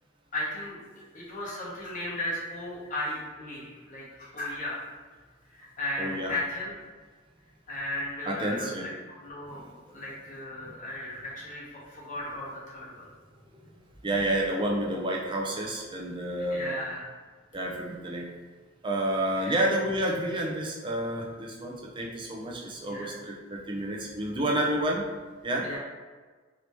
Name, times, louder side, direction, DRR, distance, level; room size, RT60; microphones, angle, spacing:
voice 1, 0.3-0.8 1.1-4.8 5.5-6.7 7.7-13.1 16.3-17.0 19.3-19.6 22.8-23.1 25.6-25.8, left 1 dB, 40° left, -6 dB, 1.0 m, -36 dB
voice 2, 6.0-6.4 8.3-8.8 9.5-9.7 14.0-16.7 17.5-18.3 18.8-25.1 25.4-25.8, right 1 dB, 25° right, -2 dB, 0.5 m, -30 dB
3.0 x 2.7 x 3.3 m, 1.4 s
head